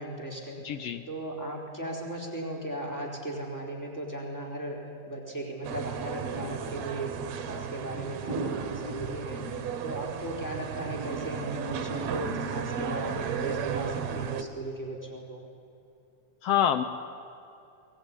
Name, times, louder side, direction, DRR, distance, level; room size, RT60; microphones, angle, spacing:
voice 1, 0.0-0.6 1.1-4.8 5.1-9.4 9.8-15.4, right 1 dB, 5° left, -1 dB, 3.7 m, -37 dB
voice 2, 0.6-1.0 16.4-16.8, left 9 dB, 75° left, 10 dB, 1.4 m, -26 dB
sound 1, 5.6-14.4, right 6 dB, 65° right, 2.2 m, -34 dB
23.5 x 19.5 x 9.7 m, 2.6 s
omnidirectional pair, 3.6 m